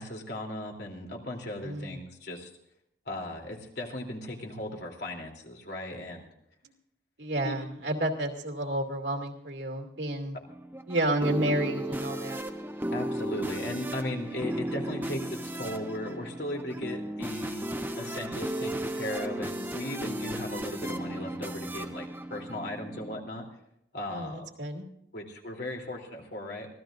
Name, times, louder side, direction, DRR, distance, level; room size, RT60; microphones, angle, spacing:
voice 1, 0.0-2.5 3.1-6.3 7.4-7.5 12.9-17.6 17.9-23.4 23.9-24.5 25.1-26.7, left 1 dB, 65° left, 0 dB, 3.2 m, -37 dB
voice 2, 1.6-2.0 7.2-10.4 10.9-12.4 24.1-24.8, right 1 dB, 75° right, 2 dB, 2.7 m, -30 dB
sound 1, 10.5-23.2, right 1 dB, 10° right, 0.9 m, -35 dB
25.0 x 17.0 x 2.6 m, 0.75 s
head